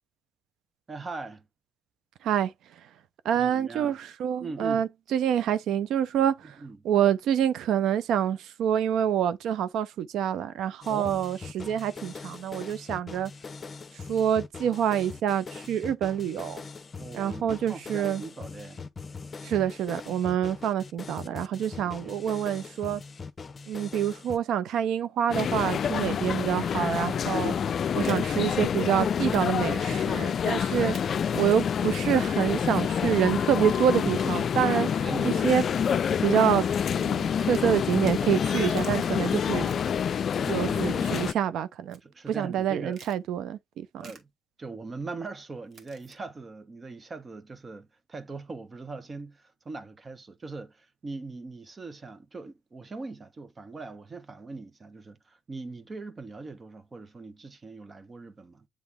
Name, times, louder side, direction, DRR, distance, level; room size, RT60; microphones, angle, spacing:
voice 1, 0.9-1.5 3.3-4.0 4.4-4.8 6.4-6.8 10.9-11.1 17.0-18.9 21.8-22.2 29.9-30.2 30.5-30.9 34.0-34.5 35.0-35.5 40.4-41.2 42.0-43.0 44.0-44.3 44.6-58.7, right 3 dB, 35° right, 1.2 m, -40 dB
voice 2, 3.2-6.3 6.8-13.3 14.1-16.6 17.1-18.2 19.4-23.0 23.7-27.5 27.9-30.9 31.3-34.9 35.2-35.6 36.2-36.6 36.9-39.7 40.5-42.0 42.3-43.6, right 9 dB, 80° right, 0.6 m, -26 dB
sound 1, 10.8-24.4, left 4 dB, 35° left, 0.9 m, -42 dB
sound 2, 25.3-41.3, left 7 dB, 55° left, 0.4 m, -27 dB
Crunch of bones, 27.6-28.2 29.3-29.5 29.7-29.8 30.9-31.1 31.8-32.3 33.5-34.3 35.2-36.2 37.3-37.6 38.3-39.1 39.6-40.0 41.0-41.4 41.9-42.0 42.9-43.2 44.0-44.2 45.7-46.1, right 4 dB, 60° right, 2.2 m, -51 dB
8.1 x 3.4 x 3.5 m
cardioid pair, 90°, 0 cm